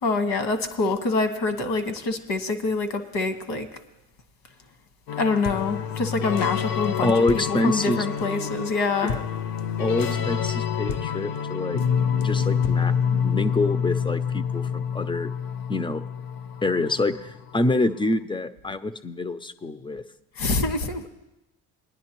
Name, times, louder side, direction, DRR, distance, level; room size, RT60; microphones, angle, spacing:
voice 1, 0.0-3.7 5.2-9.2 20.4-21.1, left 3 dB, 75° left, 7 dB, 1.4 m, -26 dB
sound 1, 5.1-17.7, left 7 dB, 55° left, 0.6 m, -27 dB
voice 2, 7.0-8.5 9.0-9.2 9.8-11.8 12.2-15.3 15.7-16.1 16.6-20.0, left 2 dB, 15° left, 12 dB, 0.4 m, -26 dB
19.5 x 10.5 x 3.0 m, 0.97 s
cardioid pair, 90°, 40 cm